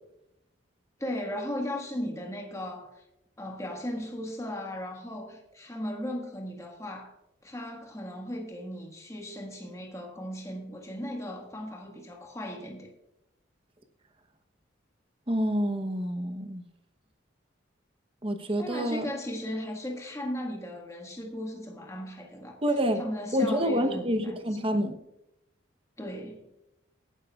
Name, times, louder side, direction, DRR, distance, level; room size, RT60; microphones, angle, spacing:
voice 1, 1.0-3.0 3.4-7.1 7.4-12.9 18.6-22.6 23.0-24.4 26.0-26.5, left 1 dB, 15° left, 1.6 m, -36 dB
voice 2, 15.3-16.6 18.2-19.0 22.6-23.0 23.3-25.0, equal, 25° right, 0.9 m, -27 dB
18.0 x 10.0 x 2.4 m
head